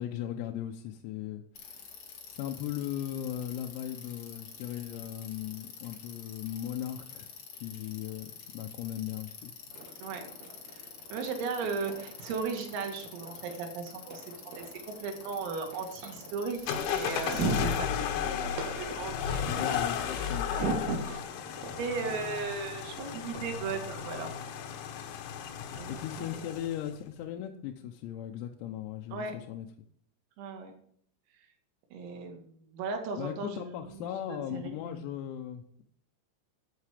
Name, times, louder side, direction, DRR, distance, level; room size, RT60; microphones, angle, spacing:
voice 1, 0.0-1.9 2.3-9.5 19.5-20.5 25.9-29.7 33.2-35.8, left 11 dB, 90° left, 3 dB, 3.7 m, -38 dB
Bicycle, 1.5-17.8, left 6 dB, 50° left, 2.4 m, -48 dB
sound 1, 9.7-24.7, right 3 dB, 55° right, 4.2 m, -48 dB
voice 2, 10.7-19.7 20.0-21.2 21.8-24.3 25.7-26.5 29.1-29.3 30.4-30.7 31.9-35.0, right 5 dB, 80° right, 4 dB, 4.7 m, -36 dB
sound 2, 16.7-26.9, left 8 dB, 70° left, 3.5 m, -34 dB
14.0 x 8.6 x 5.0 m, 0.64 s
omnidirectional pair, 6.0 m